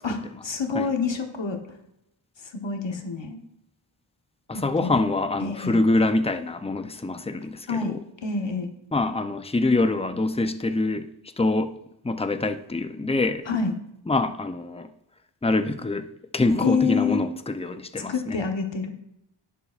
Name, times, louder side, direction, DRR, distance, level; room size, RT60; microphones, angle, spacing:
voice 1, 0.0-1.6 2.4-3.4 4.5-5.0 5.4-5.8 7.7-8.7 13.5-13.7 16.6-17.3 18.0-18.9, left 5 dB, 65° left, 4 dB, 1.3 m, -27 dB
voice 2, 4.5-8.0 8.9-11.1 11.4-11.7 12.0-13.4 14.1-14.9 15.4-16.1 16.3-18.4, left 2 dB, 15° left, 9 dB, 0.6 m, -25 dB
10.5 x 10.0 x 2.5 m, 0.80 s
wide cardioid pair, 65°, 48 cm